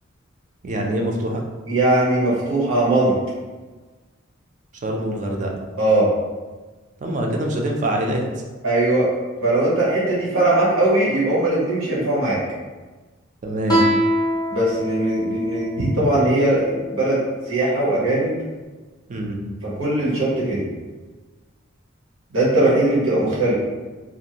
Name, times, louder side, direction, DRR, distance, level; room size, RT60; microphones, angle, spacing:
voice 1, 0.6-1.4 4.8-5.5 7.0-8.2 13.4-13.8 15.8-15.9 19.1-19.4, right 1 dB, 40° right, 1 dB, 0.4 m, -24 dB
voice 2, 1.7-3.1 5.8-6.1 8.6-9.1 9.4-12.4 14.5-17.2 17.5-18.3 19.6-20.6 22.3-23.5, right 2 dB, 90° right, -6 dB, 1.0 m, -20 dB
Guitar, 13.7-16.9, equal, 20° left, 0.6 m, -23 dB
2.6 x 2.3 x 2.8 m, 1.3 s
head